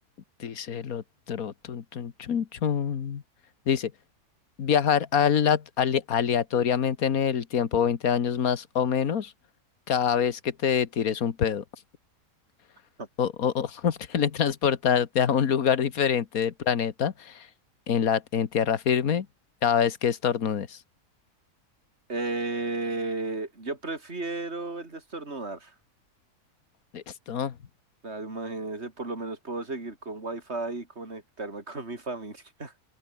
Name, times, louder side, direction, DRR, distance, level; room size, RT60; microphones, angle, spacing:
voice 1, 0.4-3.2 3.7-3.9 4.6-9.3 9.9-11.6 13.2-17.5 17.9-19.3 19.6-20.8 26.9-27.5, left 8 dB, 65° left, 1.8 m, -25 dB
voice 2, 22.1-25.7 28.0-32.7, right 3 dB, 45° right, 4.5 m, -34 dB
open air
omnidirectional pair, 1.6 m